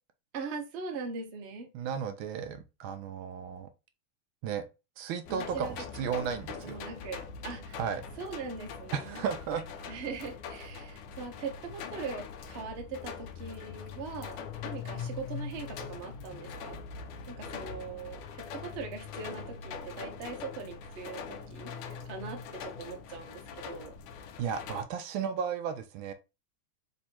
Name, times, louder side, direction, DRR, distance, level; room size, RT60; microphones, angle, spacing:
voice 1, 0.3-1.7 5.3-5.8 6.2-6.4 6.6-7.8 8.2-9.2 9.9-16.8 17.3-24.0, right 5 dB, 50° right, 0.7 m, -41 dB
voice 2, 1.7-3.7 4.4-4.6 5.0-6.8 7.7-8.1 8.9-10.0 24.4-26.1, right 7 dB, 75° right, 1.3 m, -34 dB
sound 1, 5.2-24.8, left 6 dB, 90° left, 1.5 m, -42 dB
4.2 x 2.7 x 4.3 m
omnidirectional pair, 2.3 m